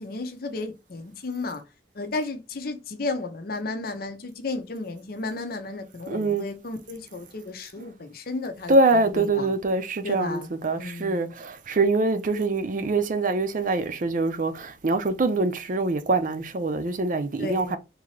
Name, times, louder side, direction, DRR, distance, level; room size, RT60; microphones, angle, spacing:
voice 1, 0.0-1.6 1.9-8.7 9.1-9.5 10.0-10.5 10.8-11.3 17.4-17.8, left 3 dB, 55° left, 0.7 m, -33 dB
voice 2, 6.1-6.5 7.8-7.9 8.7-17.8, right 3 dB, 45° right, 0.5 m, -24 dB
3.7 x 2.8 x 3.2 m
head